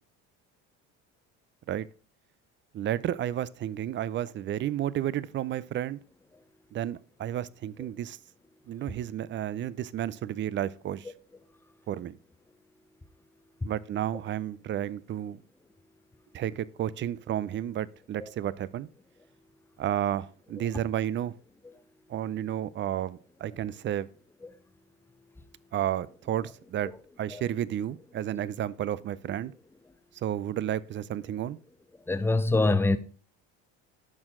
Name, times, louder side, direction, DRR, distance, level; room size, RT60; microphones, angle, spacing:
voice 1, 2.7-6.0 6.7-8.2 8.7-11.1 11.9-12.1 13.6-15.4 16.3-18.9 19.8-21.3 22.1-24.1 25.7-26.9 27.2-29.5 30.1-31.6, right 11 dB, 35° right, 0.5 m, -32 dB
voice 2, 32.1-33.0, left 2 dB, 5° left, 0.7 m, -25 dB
12.0 x 4.5 x 3.7 m
supercardioid pair, 105°, 34 cm